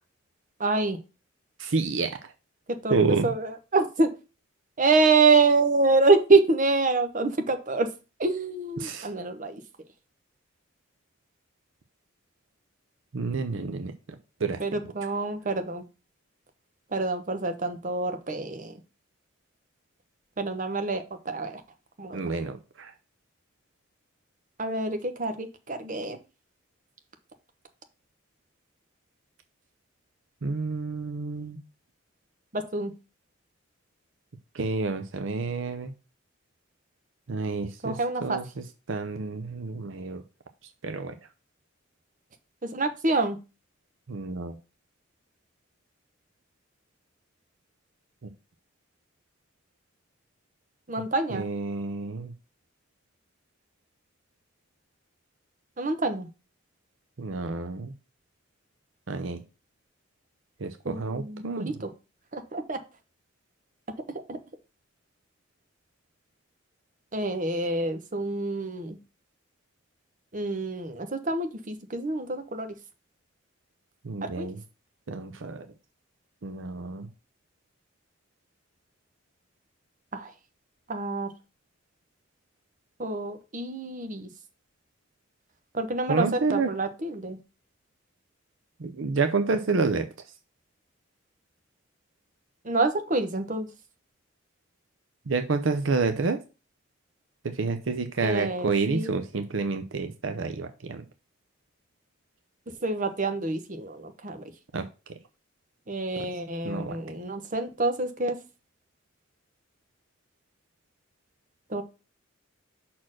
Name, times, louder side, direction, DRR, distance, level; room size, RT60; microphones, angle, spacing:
voice 1, 0.6-1.0 2.8-3.0 3.2-4.1 4.8-7.9 8.2-9.6 14.6-15.8 16.9-18.7 20.4-21.6 22.0-22.2 24.6-26.2 32.5-32.9 37.8-38.4 42.7-43.4 50.9-51.4 55.8-56.3 60.8-61.9 62.3-62.8 64.3-64.4 67.1-69.0 70.3-72.7 74.2-74.5 80.1-80.3 80.9-81.3 83.0-84.3 85.7-87.4 92.6-93.7 98.2-99.1 102.8-104.4 105.9-108.4 111.7-111.8, right 3 dB, 40° right, 8 dB, 1.0 m, -26 dB
voice 2, 1.6-2.2 2.9-3.3 8.8-9.1 13.1-13.9 14.4-14.6 22.1-22.9 30.4-31.6 34.5-35.9 37.3-40.2 40.8-41.1 44.1-44.6 51.3-52.3 57.2-57.9 59.1-59.4 60.6-61.7 74.0-74.6 75.1-75.7 76.4-77.1 86.1-86.7 88.8-90.1 95.3-96.4 97.4-101.0 104.7-104.8 106.2-106.3 106.6-107.0, right 4 dB, 70° right, 8 dB, 0.7 m, -29 dB
5.9 x 4.3 x 6.3 m, 0.31 s
head